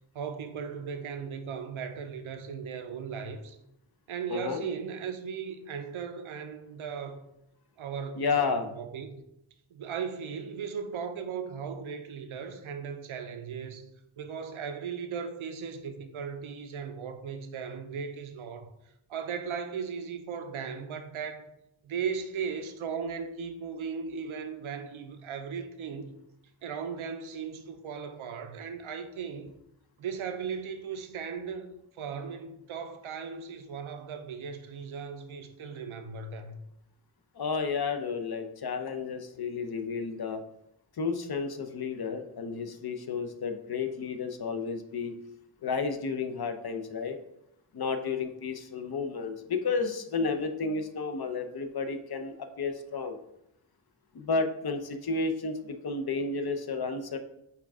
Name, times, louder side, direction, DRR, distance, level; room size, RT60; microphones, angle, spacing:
voice 1, 0.1-3.6 4.1-7.2 7.8-9.1 9.7-13.9 14.2-18.7 19.1-21.5 21.8-26.2 26.6-29.5 30.0-36.6, right 6 dB, 80° right, 0.6 m, -37 dB
voice 2, 4.3-4.6 8.2-8.7 37.4-40.4 41.0-45.1 45.6-47.2 47.7-53.2 54.1-57.2, left 4 dB, 50° left, 0.6 m, -32 dB
5.6 x 2.4 x 3.6 m
cardioid pair, 40°, 48 cm